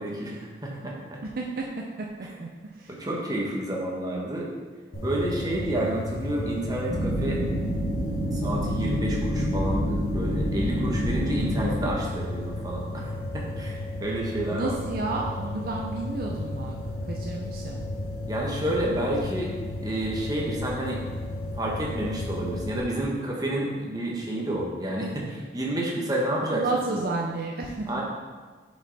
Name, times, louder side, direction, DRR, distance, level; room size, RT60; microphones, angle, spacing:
voice 1, 0.0-1.2 3.0-4.5 5.0-7.4 8.3-13.1 13.3-14.8 18.2-19.5 19.8-21.0 21.6-26.6 26.9-27.0 27.9-28.0, right 1 dB, 20° right, -3 dB, 1.1 m, -30 dB
voice 2, 1.2-1.7 2.0-2.1 2.4-2.9 14.5-16.8 17.1-17.9 26.5-28.0, right 3 dB, 50° right, -1 dB, 0.5 m, -31 dB
sound 1, 4.9-22.8, left 1 dB, 50° left, 1.4 m, -34 dB
sound 2, 6.9-11.9, equal, 35° left, 1.5 m, -27 dB
6.8 x 5.3 x 4.0 m, 1.4 s
head